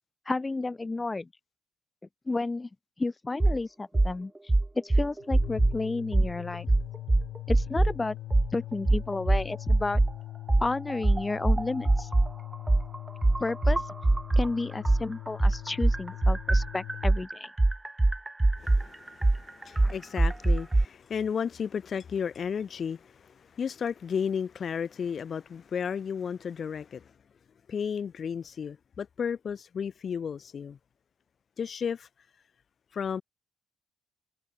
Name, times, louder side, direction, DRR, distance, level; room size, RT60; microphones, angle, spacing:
voice 1, 0.3-1.3 2.3-2.7 3.0-4.3 4.7-6.7 7.5-8.2 8.5-10.0 10.6-12.1 13.4-13.8 14.4-17.5 19.8-19.9, left 3 dB, 20° left, 1.4 m, -31 dB
sound 1, 3.4-3.6 3.9-4.1 4.5-5.8 6.1-6.3 6.7-7.9 8.3-8.5 8.9-10.1 10.5-14.5 14.8-20.8, right 2 dB, 15° right, 0.4 m, -23 dB
sound 2, 5.2-17.1, left 15 dB, 90° left, 4.7 m, -41 dB
voice 2, 18.6-27.1 27.7-30.8 31.6-32.1 32.9-33.2, left 7 dB, 50° left, 2.5 m, -33 dB
cardioid pair, 90°, 0 cm